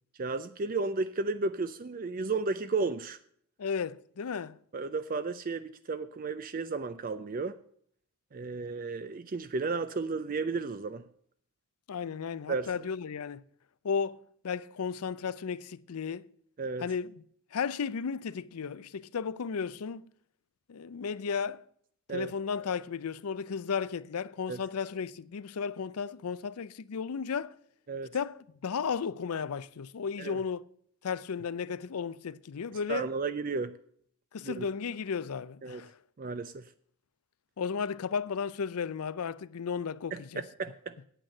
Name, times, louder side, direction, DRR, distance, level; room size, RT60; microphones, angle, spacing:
voice 1, 0.2-3.2 4.7-7.6 8.3-11.0 12.5-12.7 16.6-16.8 22.1-22.3 24.5-24.6 27.9-28.1 30.2-30.4 32.9-33.8 34.4-34.7 35.6-35.8 36.2-36.7 40.1-40.9, right 4 dB, 40° right, 0.4 m, -33 dB
voice 2, 3.6-4.6 11.9-13.4 13.8-16.3 16.8-17.2 17.5-20.1 20.7-21.6 22.1-27.6 28.1-30.6 31.0-33.1 34.3-36.0 37.6-40.4, left 6 dB, 80° left, 0.5 m, -34 dB
9.0 x 8.7 x 7.6 m
head